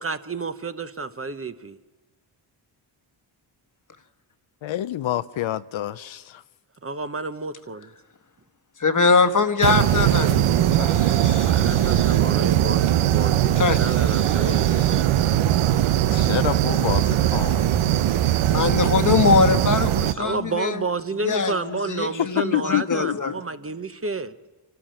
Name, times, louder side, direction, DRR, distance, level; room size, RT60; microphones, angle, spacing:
voice 1, 0.0-1.8 6.8-7.9 9.7-11.0 11.5-15.2 20.2-24.3, right 3 dB, 25° right, 0.9 m, -31 dB
voice 2, 4.6-6.4 16.1-17.7 21.3-21.9 22.4-23.4, left 13 dB, 65° left, 0.7 m, -28 dB
voice 3, 8.8-11.9 13.6-13.8 18.5-20.8 21.2-23.4, left 4 dB, 40° left, 1.3 m, -22 dB
sound 1, 9.6-20.1, right 12 dB, 85° right, 0.8 m, -20 dB
26.0 x 13.0 x 8.9 m
cardioid pair, 75°, 49 cm